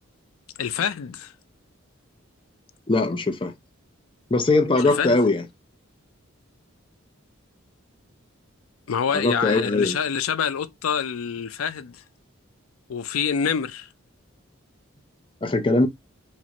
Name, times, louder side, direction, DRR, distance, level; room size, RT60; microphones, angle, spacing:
voice 1, 0.6-1.3 4.7-5.2 8.9-12.0 12.9-13.9, left 7 dB, 85° left, 0.4 m, -26 dB
voice 2, 2.9-3.5 4.3-5.4 9.1-10.0 15.4-15.9, left 2 dB, 25° left, 0.5 m, -21 dB
3.0 x 2.5 x 2.9 m
head